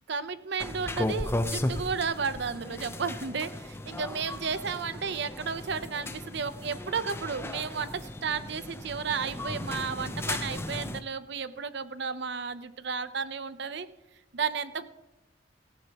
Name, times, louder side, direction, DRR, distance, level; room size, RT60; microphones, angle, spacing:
voice 1, 0.1-13.9 14.3-14.9, right 5 dB, 65° right, 13 dB, 0.7 m, -33 dB
sound 1, 0.6-11.0, left 1 dB, 15° left, 0.7 m, -35 dB
17.5 x 15.0 x 3.0 m, 1.1 s
head